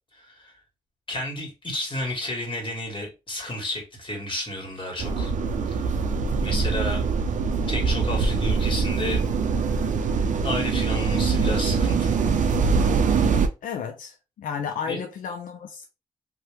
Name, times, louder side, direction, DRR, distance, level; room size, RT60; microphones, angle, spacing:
voice 1, 0.1-0.5 1.1-5.3 5.8-5.9 6.4-7.0 7.7-9.3 10.4-12.1 14.9-15.0, left 1 dB, 35° left, 1.5 m, -32 dB
sound 1, 5.0-13.5, right 5 dB, 70° right, 0.5 m, -23 dB
voice 2, 13.6-15.9, left 7 dB, 80° left, 0.4 m, -32 dB
2.8 x 2.1 x 3.0 m
supercardioid pair, 50°, 14 cm